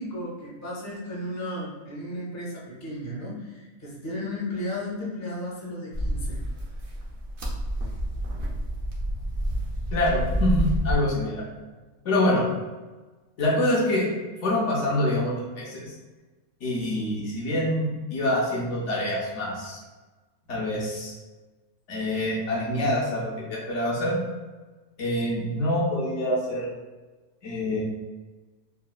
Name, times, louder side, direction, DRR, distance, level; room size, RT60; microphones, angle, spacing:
voice 1, 0.0-6.4, left 1 dB, 20° left, -6 dB, 0.5 m, -34 dB
sound 1, 5.9-11.0, equal, 60° right, 0.6 m, -29 dB
voice 2, 9.9-11.4 12.0-12.5 13.4-14.1 14.4-15.9 16.6-19.8 20.5-21.1 21.9-24.2 25.0-26.7 27.4-27.8, left 1 dB, 65° left, -5 dB, 0.9 m, -25 dB
3.8 x 2.1 x 2.3 m, 1.3 s
omnidirectional pair, 1.5 m